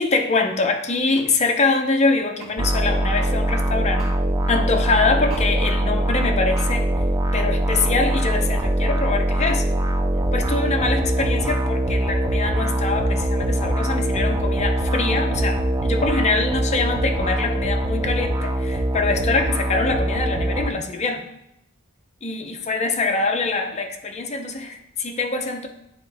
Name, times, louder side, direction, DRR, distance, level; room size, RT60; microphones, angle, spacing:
voice 1, 0.0-4.1 4.5-6.9 7.3-9.6 10.3-21.2 22.2-25.7, left 3 dB, 35° left, 3 dB, 0.7 m, -24 dB
sound 1, 1.1-1.3 2.4-2.5 4.0-4.2 5.3-5.5 6.5-6.7, right 2 dB, 80° right, 1.7 m, -39 dB
sound 2, 2.6-20.7, right 1 dB, 15° right, 0.4 m, -22 dB
9.4 x 3.6 x 3.4 m, 0.80 s
head